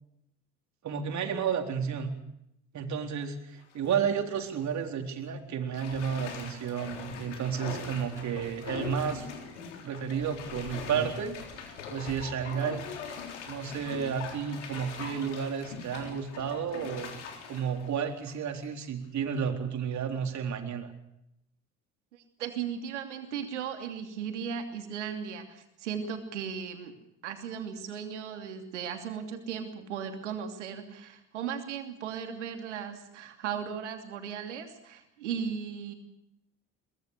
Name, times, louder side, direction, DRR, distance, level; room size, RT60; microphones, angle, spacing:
voice 1, 0.8-2.1 2.7-9.3 9.8-11.4 11.9-12.8 13.5-17.1 17.5-20.9, right 7 dB, 55° right, 4 dB, 4.0 m, -32 dB
Bathtub (filling or washing), 3.6-4.0 4.4-4.5 5.7-18.9 19.3-19.4, left 6 dB, 90° left, 3.7 m, -41 dB
voice 2, 22.1-26.9 27.2-35.9, right 7 dB, 90° right, 5 dB, 2.9 m, -37 dB
23.0 x 20.0 x 6.7 m, 0.80 s
hypercardioid pair, 60°, 34 cm